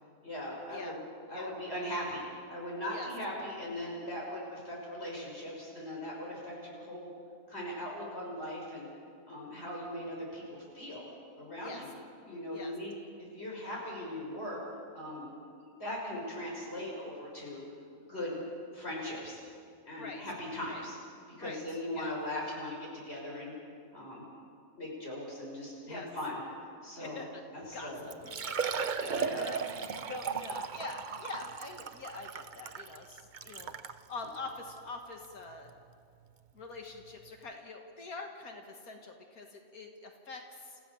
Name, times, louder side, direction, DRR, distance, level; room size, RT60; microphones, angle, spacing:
voice 1, 0.2-1.0 1.3-2.2 2.5-7.1 7.5-8.9 9.3-11.0 11.4-11.9 12.2-12.9 13.3-14.6 14.9-15.3 15.7-17.6 18.1-18.4 18.7-19.4 19.9-21.0 21.4-23.5 23.9-24.2 24.8-26.4 26.8-27.2 27.5-28.0 29.1-29.5, left 1 dB, 45° left, -3 dB, 6.4 m, -39 dB
voice 2, 27.0-27.4 27.7-29.6 30.1-33.7 34.1-35.7 36.5-40.8, left 3 dB, 75° left, 3 dB, 2.1 m, -44 dB
Liquid, 27.7-27.8 28.1-34.0 34.7-34.8 35.2-35.3 37.0-37.1 37.2-37.3, right 6 dB, 45° right, 0.7 m, -36 dB
29.5 x 15.0 x 7.1 m, 2.3 s
omnidirectional pair, 1.5 m